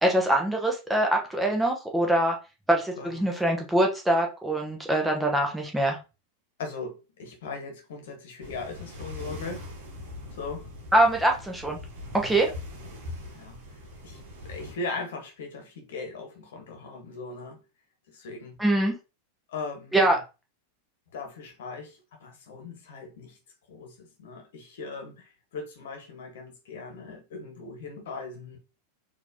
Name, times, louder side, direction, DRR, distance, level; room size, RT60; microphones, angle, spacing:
voice 1, 0.0-2.3 2.7-6.0 10.9-11.8 12.1-12.5 18.6-18.9 19.9-20.2, right 1 dB, 5° right, 0.9 m, -23 dB
voice 2, 6.6-9.7 10.3-10.7 13.3-13.6 14.0-17.6 18.1-18.6 19.5-20.2 21.1-23.4 23.7-28.6, left 3 dB, 55° left, 1.2 m, -39 dB
sound 1, 8.4-14.7, left 2 dB, 55° right, 1.2 m, -41 dB
4.3 x 2.8 x 2.7 m
figure-of-eight pair, 90°, 0 cm